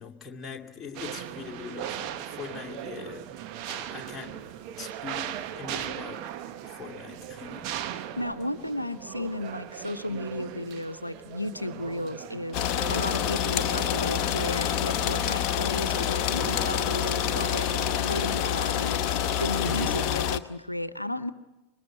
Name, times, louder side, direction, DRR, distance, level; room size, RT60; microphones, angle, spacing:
voice 1, 0.0-3.3 3.6-4.4 4.8-6.3 6.6-7.8 19.6-20.1, left 5 dB, 20° left, 2.4 m, -41 dB
sound 1, 0.9-19.8, right 11 dB, 40° right, 1.3 m, -39 dB
voice 2, 8.2-17.7 18.0-19.0 19.4-21.3, left 1 dB, 85° left, 0.8 m, -34 dB
sound 2, 12.5-20.4, left 10 dB, 40° left, 0.9 m, -27 dB
25.5 x 21.5 x 8.3 m
figure-of-eight pair, 90°, 0 cm